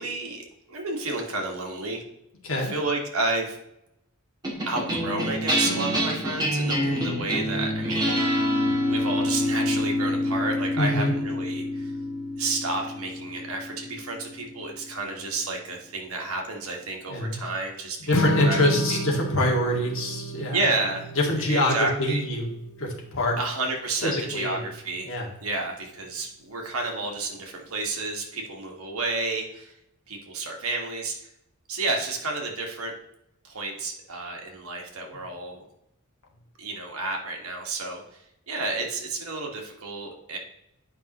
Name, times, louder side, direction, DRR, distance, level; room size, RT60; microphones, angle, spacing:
voice 1, 0.0-2.0 2.6-3.6 4.7-8.5 8.9-11.9 12.4-18.1 18.4-18.6 18.9-19.0 20.5-21.1 21.5-22.2 23.4-25.1 25.4-29.7 30.1-31.3 31.7-32.9 33.4-35.6 36.6-40.4, right 3 dB, 75° right, 1 dB, 1.7 m, -31 dB
voice 2, 2.4-2.7 10.8-11.1 17.1-17.4 18.1-20.6 21.2-22.5 22.8-23.4 24.0-24.6 25.1-25.3, left 1 dB, 65° left, -1 dB, 2.1 m, -25 dB
sound 1, 4.4-15.0, left 1 dB, 20° right, 2.4 m, -27 dB
Strum, 18.1-24.4, equal, 85° left, 0.8 m, -33 dB
10.5 x 5.6 x 3.1 m, 0.82 s
head